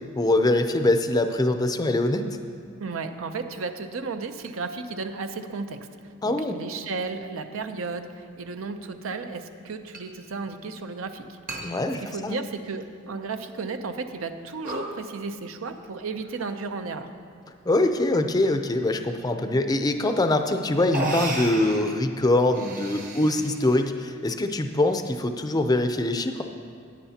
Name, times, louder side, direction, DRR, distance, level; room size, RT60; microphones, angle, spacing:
voice 1, 0.2-2.4 6.2-6.6 11.6-12.4 17.7-26.4, left 2 dB, 20° left, 7 dB, 0.5 m, -23 dB
voice 2, 2.8-5.9 6.2-11.4 12.0-17.1, right 4 dB, 75° right, 8 dB, 0.6 m, -34 dB
sound 1, 8.2-8.3 9.9-10.0 10.4-10.5 11.5-11.6 12.1-12.8 13.4-13.5 14.1-14.3 14.6-14.9 16.1-16.6 17.4-17.8 19.7-19.8 20.5-20.6 20.9-21.9 22.4-23.8, right 1 dB, 45° right, 1.3 m, -33 dB
14.5 x 9.7 x 2.8 m, 2.2 s
head